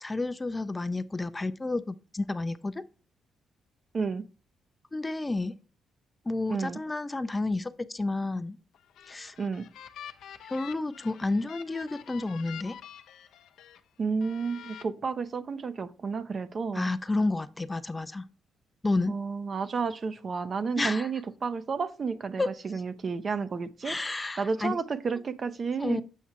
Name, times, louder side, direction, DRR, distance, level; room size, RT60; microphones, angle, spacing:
voice 1, 0.0-2.8 4.9-5.6 6.3-8.6 9.1-9.4 10.4-12.8 16.7-18.3 18.8-19.1 20.8-21.1 22.4-22.5 23.8-24.8 25.8-26.0, left 2 dB, 20° left, 0.4 m, -30 dB
voice 2, 6.5-6.8 9.4-9.6 14.0-16.9 19.1-24.0 24.4-26.0, right 5 dB, 40° right, 0.5 m, -31 dB
sound 1, 8.7-13.8 14.2-14.8, left 9 dB, 75° left, 0.5 m, -47 dB
7.3 x 5.5 x 2.9 m
cardioid pair, 90°, 0 cm